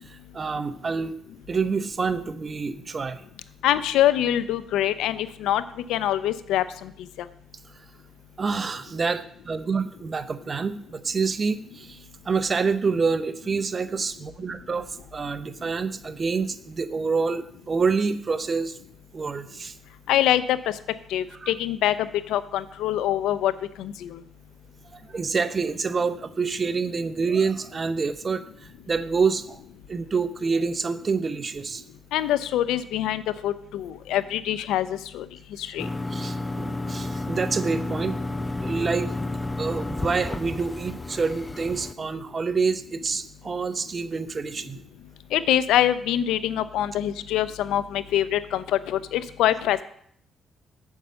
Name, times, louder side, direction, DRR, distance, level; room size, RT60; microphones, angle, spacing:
voice 1, 0.1-1.2 1.5-3.2 8.4-18.8 19.1-19.7 21.4-21.5 24.9-28.4 28.9-29.6 29.9-31.8 36.1-38.2 38.6-39.1 39.6-44.8, right 5 dB, 35° right, 12 dB, 0.7 m, -27 dB
voice 2, 3.6-5.6 5.9-6.9 20.1-20.7 21.1-23.5 23.8-24.2 32.1-35.2 35.6-35.9 45.3-49.8, left 12 dB, 90° left, 14 dB, 0.5 m, -24 dB
sound 1, 35.8-41.9, left 2 dB, 15° left, 0.5 m, -31 dB
7.2 x 5.4 x 7.5 m, 0.65 s
cardioid pair, 90°, 0 cm